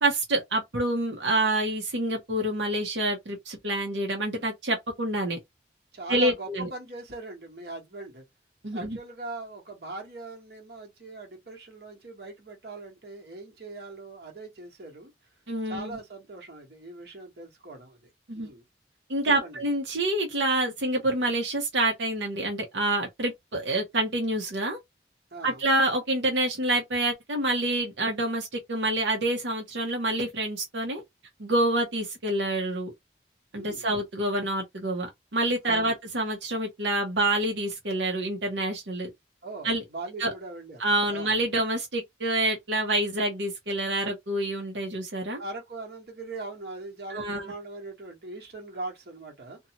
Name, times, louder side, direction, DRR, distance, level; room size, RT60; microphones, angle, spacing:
voice 1, 0.0-5.4 6.1-6.7 8.6-9.0 15.5-16.0 18.3-18.5 19.1-24.8 25.4-31.0 31.4-32.9 33.5-39.1 39.6-39.8 40.2-40.3 40.8-45.4 47.1-47.5, right 1 dB, 90° right, 0.8 m, -27 dB
voice 2, 5.9-8.2 8.7-15.1 15.6-18.0 18.3-18.6 19.2-19.6 25.3-25.6 33.6-33.9 35.6-35.9 39.4-41.4 45.4-49.6, right 3 dB, 60° right, 1.2 m, -40 dB
2.6 x 2.3 x 2.8 m
head